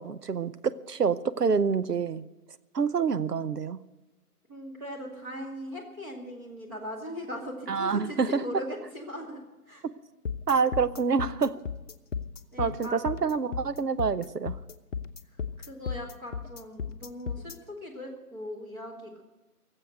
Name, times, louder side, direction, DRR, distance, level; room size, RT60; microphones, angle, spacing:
voice 1, 0.0-2.2 2.7-3.8 7.7-8.4 10.5-11.5 12.6-14.6, right 5 dB, 80° right, 13 dB, 1.0 m, -27 dB
voice 2, 4.5-9.4 9.7-9.8 12.5-13.0 15.7-19.2, equal, 15° right, -2 dB, 2.3 m, -39 dB
sound 1, 10.2-17.5, left 6 dB, 50° left, 1.0 m, -35 dB
18.0 x 7.9 x 7.8 m, 1.1 s
figure-of-eight pair, 160°, 46 cm